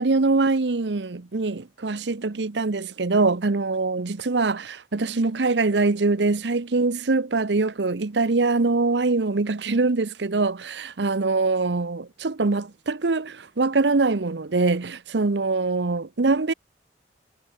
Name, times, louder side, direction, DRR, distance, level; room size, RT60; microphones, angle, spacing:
voice 1, 0.0-16.5, right 3 dB, 75° right, 0.8 m, -23 dB
head